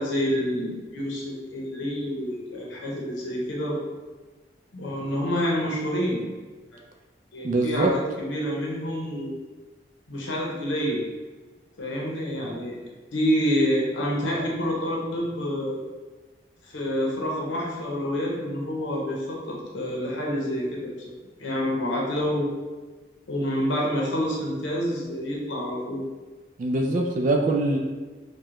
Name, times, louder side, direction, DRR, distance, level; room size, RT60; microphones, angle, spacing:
voice 1, 0.0-3.8 4.7-6.3 7.3-9.3 10.1-11.0 11.8-15.8 16.6-20.9 21.4-22.5 23.3-26.0, equal, 85° left, -3 dB, 0.7 m, -28 dB
voice 2, 7.4-7.9 26.6-27.8, right 2 dB, 45° right, 2 dB, 0.3 m, -23 dB
4.7 x 2.2 x 3.0 m, 1.3 s
head